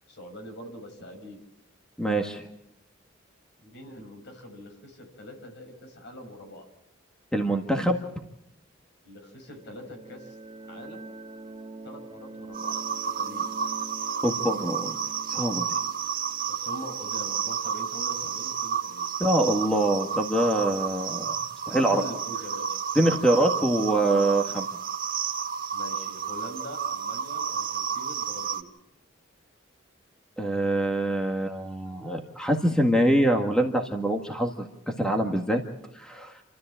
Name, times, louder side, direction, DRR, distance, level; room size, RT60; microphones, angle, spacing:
voice 1, 0.1-1.4 3.6-6.7 9.0-10.4 10.6-11.1 11.8-13.5 16.5-19.1 21.7-22.8 25.7-28.7, equal, 60° left, 4 dB, 6.2 m, -43 dB
voice 2, 2.0-2.5 7.3-8.0 14.2-15.0 15.3-15.7 19.2-21.4 21.7-22.0 23.0-24.7 30.4-34.7 35.0-35.6 35.9-36.3, right 1 dB, 5° left, 3 dB, 1.6 m, -24 dB
sound 1, 9.3-17.9, right 2 dB, 25° right, 3.1 m, -45 dB
sound 2, 12.5-28.6, right 7 dB, 45° right, 1.3 m, -31 dB
29.0 x 13.5 x 8.8 m, 0.84 s
head